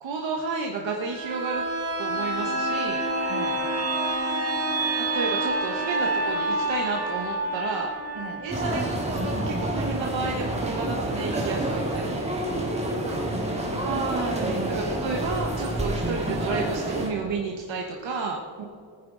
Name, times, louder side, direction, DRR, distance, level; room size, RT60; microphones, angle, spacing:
voice 1, 0.0-1.6 2.0-3.0 5.1-7.9 8.4-8.8 9.2-12.2 13.8-14.6 15.0-18.4, right 4 dB, 70° right, 1 dB, 1.3 m, -31 dB
sound 1, 1.1-10.7 11.0-11.1, right 2 dB, 30° right, 1.6 m, -28 dB
voice 2, 3.3-3.6 8.1-8.5 13.0-13.8 14.5-15.0 18.6-18.7, right 6 dB, 90° right, 3 dB, 2.0 m, -39 dB
sound 2, 8.5-17.1, right 1 dB, 15° right, 1.9 m, -28 dB
20.0 x 9.8 x 3.9 m, 2.3 s
wide cardioid pair, 165°, 46 cm